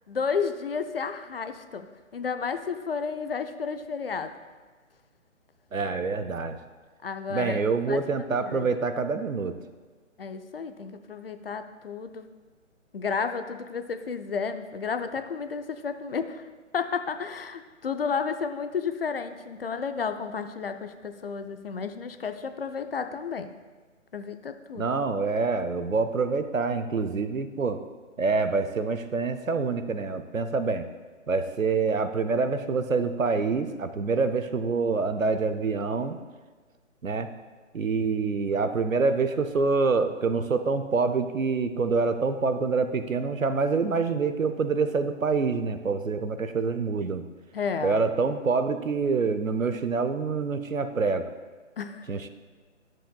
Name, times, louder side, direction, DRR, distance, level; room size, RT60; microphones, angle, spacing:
voice 1, 0.1-1.9 2.1-4.3 7.0-8.7 10.2-12.3 12.9-16.5 16.7-23.5 24.1-24.9 47.5-48.0 51.8-52.1, left 5 dB, 50° left, 9 dB, 0.5 m, -32 dB
voice 2, 5.7-6.6 7.3-9.6 24.8-27.8 28.2-30.9 31.3-36.2 37.0-37.3 37.7-47.2 47.8-51.3 52.1-52.3, right 4 dB, 85° right, 10 dB, 0.8 m, -26 dB
12.0 x 7.6 x 2.3 m, 1.4 s
figure-of-eight pair, 140°, 39 cm